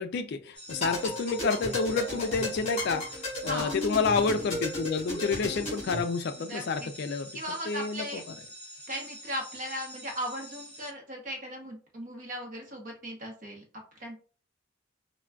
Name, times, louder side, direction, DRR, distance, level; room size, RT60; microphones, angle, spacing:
voice 1, 0.0-7.3 7.7-8.2, left 4 dB, 55° left, 8 dB, 0.3 m, -29 dB
sound 1, 0.5-10.9, equal, 5° left, 0.8 m, -47 dB
sound 2, 0.7-6.0, left 1 dB, 30° left, 1.4 m, -35 dB
voice 2, 3.5-3.8 6.5-6.9 7.3-8.2 8.9-14.2, equal, 40° right, 1 dB, 0.8 m, -37 dB
3.5 x 2.2 x 2.3 m, 0.39 s
head